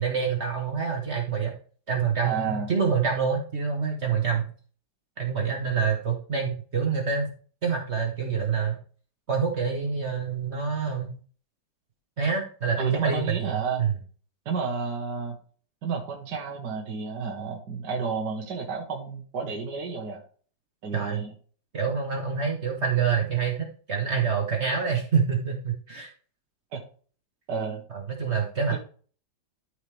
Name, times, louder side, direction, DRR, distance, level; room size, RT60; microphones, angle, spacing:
voice 1, 0.0-1.5 1.9-4.5 5.2-7.3 7.6-8.8 9.3-11.1 12.2-13.5 13.8-13.9 20.9-21.2 21.7-26.1 27.9-28.8, right 6 dB, 40° right, 2 dB, 1.3 m, -26 dB
voice 2, 2.2-2.7 12.8-13.8 14.5-15.4 15.8-20.2 20.8-21.3 26.7-26.8 27.5-27.8 28.7-28.8, right 5 dB, 70° right, 0 dB, 1.9 m, -31 dB
13.0 x 4.9 x 3.4 m, 0.42 s
omnidirectional pair, 1.9 m